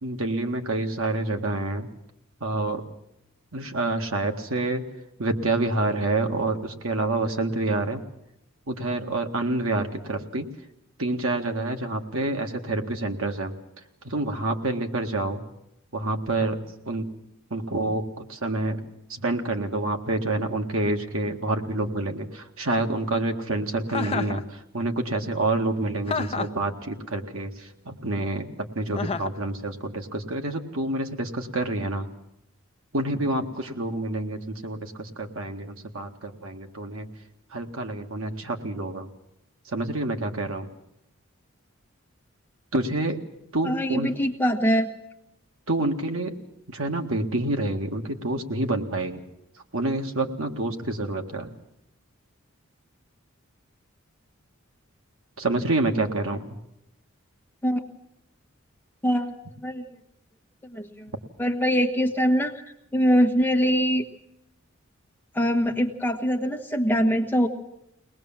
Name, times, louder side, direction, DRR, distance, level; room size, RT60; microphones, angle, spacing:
voice 1, 0.0-1.9 2.4-2.8 3.5-4.8 5.2-8.0 8.7-10.5 11.0-13.5 14.0-15.4 15.9-16.6 16.9-17.1 17.5-18.8 19.1-32.1 32.9-37.1 37.5-39.1 39.7-40.7 42.7-43.2 43.5-44.1 45.7-46.4 46.7-49.2 49.7-51.5 55.4-56.5, right 2 dB, 80° right, 5 dB, 1.9 m, -28 dB
Chuckle chortle, 23.9-24.4 26.1-26.6 29.0-29.4, left 4 dB, 30° left, 0.8 m, -29 dB
voice 2, 43.6-44.9 57.6-57.8 59.0-59.8 60.7-61.1 61.4-62.5 62.9-64.0 65.3-67.5, equal, 10° left, 2 dB, 1.3 m, -23 dB
22.5 x 19.0 x 7.4 m, 0.83 s
head